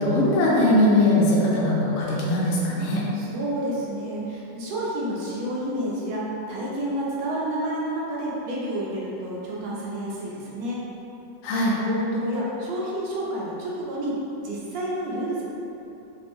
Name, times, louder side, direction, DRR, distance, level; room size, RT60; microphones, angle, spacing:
voice 1, 0.0-3.0 11.4-11.8, left 1 dB, 75° left, -4 dB, 0.7 m, -20 dB
voice 2, 3.1-10.8 11.8-14.2 14.4-15.4, right 1 dB, 70° right, -6 dB, 0.9 m, -29 dB
3.5 x 2.1 x 3.0 m, 2.9 s
omnidirectional pair, 2.0 m